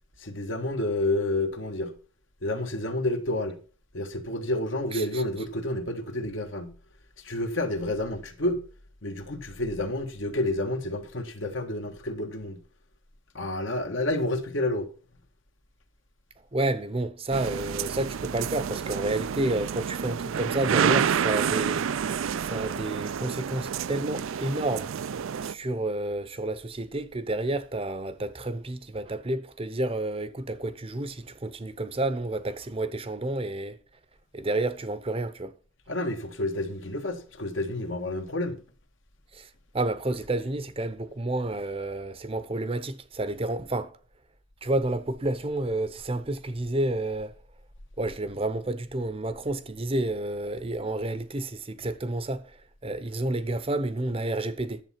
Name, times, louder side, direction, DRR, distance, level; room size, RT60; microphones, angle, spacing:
voice 1, 0.2-1.9 2.4-3.6 3.9-6.7 7.2-8.6 9.0-12.6 13.3-14.9 35.9-38.6, left 1 dB, 70° left, 1.6 m, -29 dB
voice 2, 4.9-5.2 16.5-24.9 25.4-33.8 34.3-35.5 39.3-39.5 39.7-43.9 44.6-47.3 48.0-52.6 52.8-54.8, right 2 dB, 25° right, 0.7 m, -30 dB
sound 1, 17.3-25.5, right 7 dB, 80° right, 0.4 m, -29 dB
10.5 x 7.5 x 5.8 m
head